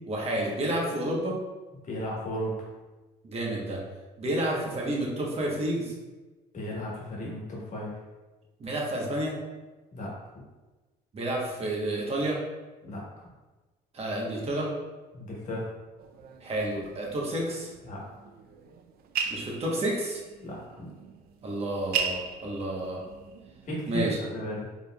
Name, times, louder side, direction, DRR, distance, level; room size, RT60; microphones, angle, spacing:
voice 1, 0.0-1.4 3.2-3.8 4.2-5.9 8.6-9.4 11.1-12.4 13.9-14.7 16.4-17.7 19.3-20.2 21.4-23.0 23.9-24.2, right 1 dB, 35° right, -2 dB, 1.1 m, -30 dB
voice 2, 1.8-2.7 6.5-8.0 9.9-10.1 12.8-13.3 15.1-15.7 17.8-18.0 20.4-20.8 23.6-24.6, equal, 45° left, -4 dB, 1.4 m, -35 dB
sound 1, 16.0-23.8, right 6 dB, 65° right, 0.4 m, -38 dB
4.0 x 3.5 x 2.3 m, 1.2 s
cardioid pair, 110°, 17 cm